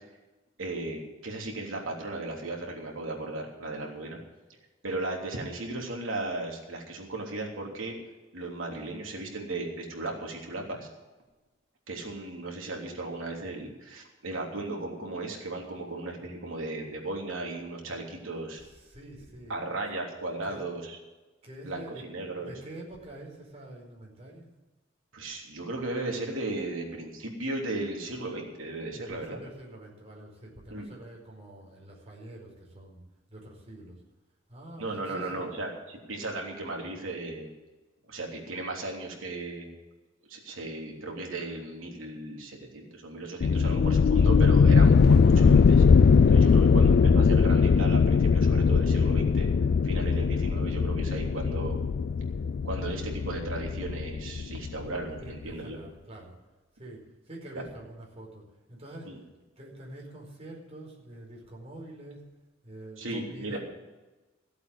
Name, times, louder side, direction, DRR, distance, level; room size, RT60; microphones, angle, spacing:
voice 1, 0.6-4.2 4.8-7.9 8.3-10.9 11.9-18.6 19.5-21.0 21.6-22.5 25.1-29.4 30.7-30.9 34.8-37.5 38.1-39.7 40.3-45.8 46.3-49.5 49.8-51.8 52.6-55.8 57.5-57.6 59.0-59.2 63.0-63.6, right 2 dB, 80° right, 0 dB, 3.3 m, -36 dB
voice 2, 18.6-19.6 20.4-20.6 21.4-22.1 22.4-24.5 28.9-33.0 33.3-34.0 34.5-35.4 46.4-46.7 55.2-56.3 56.7-59.3 59.6-62.2 62.6-63.6, right 1 dB, 30° right, -2 dB, 4.8 m, -46 dB
sound 1, 43.4-54.9, left 5 dB, 55° left, 0.3 m, -21 dB
15.5 x 8.2 x 8.0 m, 1.2 s
head